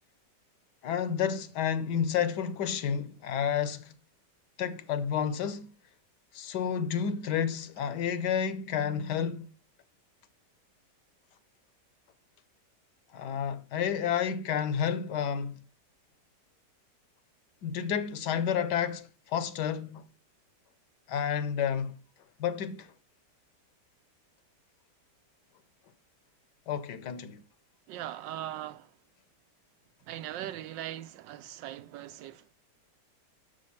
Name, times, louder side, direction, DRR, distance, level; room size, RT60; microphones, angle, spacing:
voice 1, 0.8-3.9 4.6-5.7 6.3-9.5 13.1-15.5 17.6-20.0 21.1-21.9 22.4-22.9 26.7-27.4, left 8 dB, 75° left, 1.3 m, -30 dB
voice 2, 27.9-29.0 30.0-32.5, right 12 dB, 85° right, 1.3 m, -40 dB
6.4 x 6.3 x 5.7 m
omnidirectional pair, 1.9 m